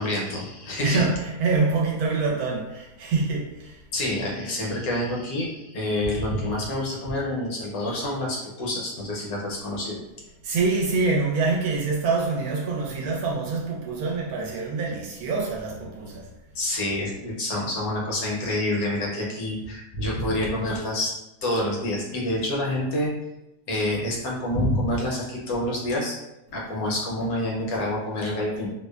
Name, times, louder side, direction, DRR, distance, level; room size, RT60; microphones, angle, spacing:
voice 1, 0.0-1.1 3.9-10.0 16.5-21.1 21.4-23.1 23.7-26.2 26.5-28.7, left 1 dB, 70° left, 1.0 m, -27 dB
voice 2, 0.8-3.8 10.4-16.3, right 4 dB, 75° right, 1.0 m, -25 dB
2.7 x 2.1 x 2.2 m
omnidirectional pair, 1.7 m